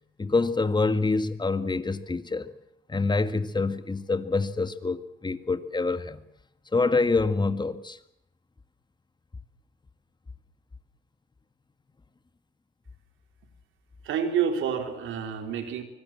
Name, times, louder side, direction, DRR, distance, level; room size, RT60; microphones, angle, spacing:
voice 1, 0.2-2.5 2.9-6.2 6.7-8.0, left 3 dB, 20° left, 12 dB, 1.8 m, -26 dB
voice 2, 14.0-15.8, right 7 dB, 80° right, 7 dB, 4.1 m, -28 dB
24.5 x 22.5 x 7.5 m, 0.77 s
cardioid pair, 90°, 20 cm